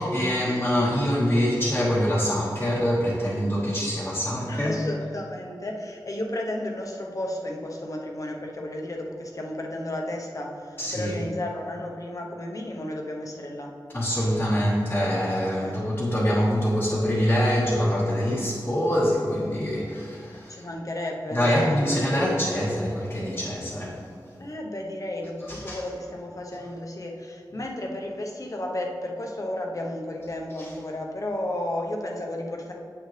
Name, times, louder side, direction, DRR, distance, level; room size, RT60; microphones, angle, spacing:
voice 1, 0.0-4.8 10.8-11.1 13.9-20.7 21.3-24.1 25.5-25.8, equal, 25° left, -7 dB, 1.2 m, -24 dB
voice 2, 4.4-13.8 15.6-15.8 20.3-22.0 24.4-32.7, left 1 dB, 45° left, 0 dB, 0.9 m, -33 dB
8.0 x 6.6 x 3.3 m, 2.5 s
wide cardioid pair, 90°, 8 cm